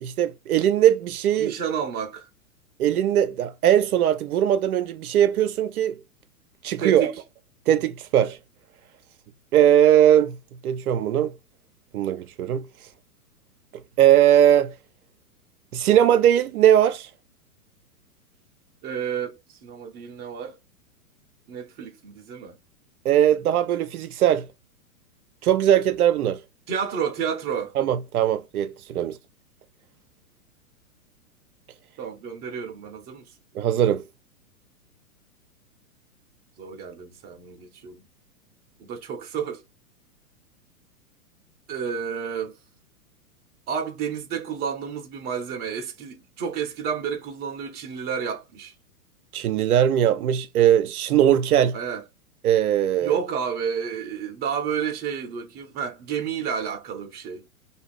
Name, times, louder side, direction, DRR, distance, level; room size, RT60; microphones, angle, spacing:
voice 1, 0.0-1.5 2.8-5.9 6.6-7.1 7.7-8.4 9.5-10.4 10.6-11.3 11.9-12.7 14.0-14.7 15.7-17.1 23.0-24.5 25.4-26.4 27.8-29.2 33.5-34.0 49.3-51.8 52.4-53.2, right 10 dB, 75° right, 0.5 m, -20 dB
voice 2, 1.4-2.3 6.8-7.1 18.8-20.6 21.5-22.6 26.7-27.7 32.0-33.2 36.6-38.0 38.8-39.6 41.7-42.5 43.7-48.7 51.7-52.0 53.0-57.4, right 7 dB, 20° right, 0.7 m, -30 dB
2.6 x 2.4 x 3.2 m
hypercardioid pair, 120°, 45 cm